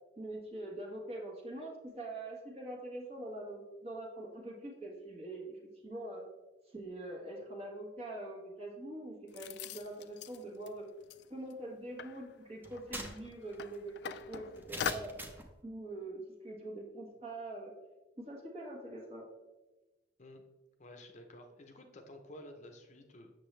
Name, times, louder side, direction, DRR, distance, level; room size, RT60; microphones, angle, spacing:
voice 1, 0.2-6.3 6.7-10.9 11.3-15.2 15.6-17.7 18.2-19.3, right 1 dB, 35° right, -1 dB, 1.4 m, -44 dB
sound 1, 9.3-10.7 11.0-11.2 11.5-11.6 12.0-14.9, left 8 dB, 65° left, 0.3 m, -42 dB
sound 2, 12.6-15.5, right 1 dB, 10° right, 0.7 m, -45 dB
voice 2, 20.8-23.3, left 1 dB, 40° left, 5 dB, 0.7 m, -52 dB
8.1 x 6.4 x 3.2 m, 1.1 s
head